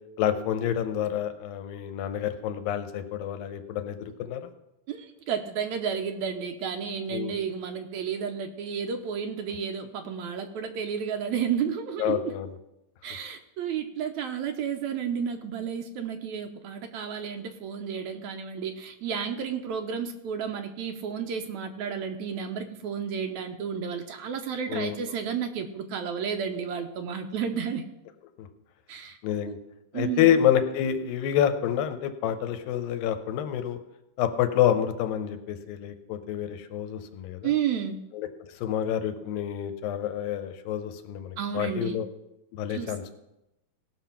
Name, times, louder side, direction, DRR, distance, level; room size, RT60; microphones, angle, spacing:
voice 1, 0.2-4.4 7.1-7.3 12.0-12.5 24.7-25.0 28.4-28.5 29.2-29.6 29.9-33.8 34.2-37.5 38.1-38.3 38.6-42.1 42.5-43.1, left 10 dB, 90° left, 9 dB, 2.6 m, -28 dB
voice 2, 4.9-12.3 13.0-27.8 28.9-29.2 29.5-29.6 29.9-30.4 37.4-38.0 41.4-42.0 42.7-42.9, right 7 dB, 75° right, 6 dB, 1.7 m, -32 dB
17.5 x 6.0 x 5.7 m, 0.90 s
omnidirectional pair, 4.0 m